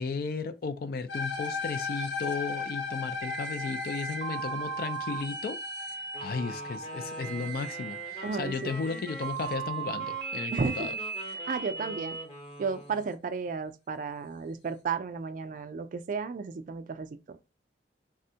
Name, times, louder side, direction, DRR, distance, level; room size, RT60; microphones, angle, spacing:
voice 1, 0.0-5.6 6.2-11.0, left 4 dB, 55° left, 0.3 m, -35 dB
sound 1, 1.1-9.5, left 5 dB, 80° left, 0.8 m, -37 dB
sound 2, 3.2-12.2, right 6 dB, 75° right, 0.7 m, -38 dB
Wind instrument woodwind instrument, 6.1-13.1, left 1 dB, 35° left, 0.9 m, -44 dB
voice 2, 8.2-8.7 10.5-10.9 11.5-12.2 12.6-17.1, right 5 dB, 50° right, 0.3 m, -33 dB
3.4 x 2.1 x 2.7 m
head